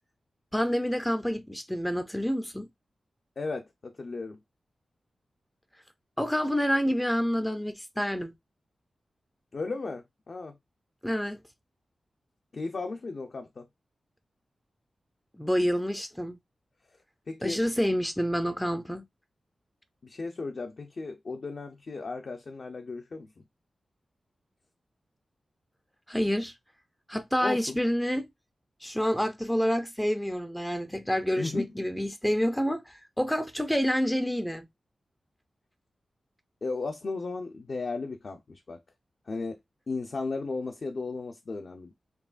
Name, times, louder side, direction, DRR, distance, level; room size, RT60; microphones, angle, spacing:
voice 1, 0.5-2.7 6.2-8.3 11.0-11.4 15.4-16.4 17.4-19.0 26.1-26.5 27.1-28.3 28.8-34.7, equal, 5° left, 0.4 m, -28 dB
voice 2, 3.4-4.4 9.5-10.6 12.5-13.7 17.3-17.6 20.0-23.3 27.4-27.8 31.4-31.7 36.6-38.8 39.3-39.6 39.9-41.9, left 3 dB, 50° left, 0.5 m, -35 dB
4.6 x 3.0 x 2.4 m
wide cardioid pair, 120°, 0 cm